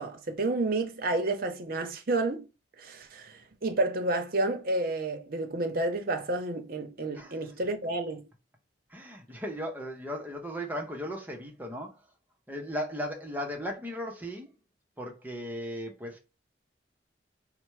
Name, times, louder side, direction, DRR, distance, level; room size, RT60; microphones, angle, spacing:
voice 1, 0.0-2.4 2.8-8.2, right 2 dB, 55° right, 0.8 m, -30 dB
voice 2, 7.1-7.5 8.9-12.0 12.5-14.5 15.0-16.2, equal, 10° right, 0.8 m, -37 dB
4.2 x 2.2 x 4.6 m
head